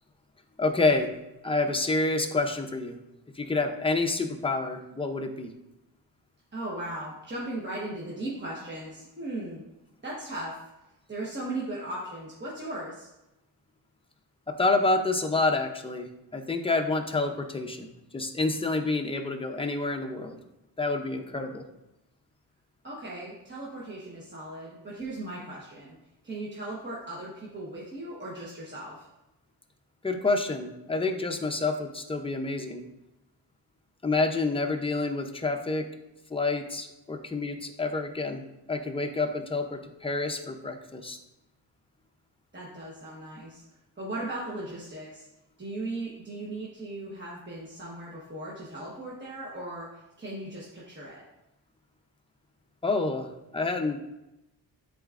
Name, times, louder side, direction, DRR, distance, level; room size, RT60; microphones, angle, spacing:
voice 1, 0.6-1.1 1.4-3.0 3.4-5.5 14.5-16.1 16.3-20.4 20.8-21.6 30.0-32.8 34.0-35.9 36.3-38.4 38.7-41.2 52.8-53.3 53.5-54.0, left 3 dB, 15° left, 4 dB, 0.6 m, -28 dB
voice 2, 6.5-9.6 10.0-10.6 11.1-13.1 22.8-26.0 26.2-29.1 42.5-43.6 44.0-45.3 45.6-51.2, right 2 dB, 25° right, -6 dB, 1.2 m, -37 dB
11.5 x 4.0 x 2.5 m, 0.93 s
wide cardioid pair, 140°, 43 cm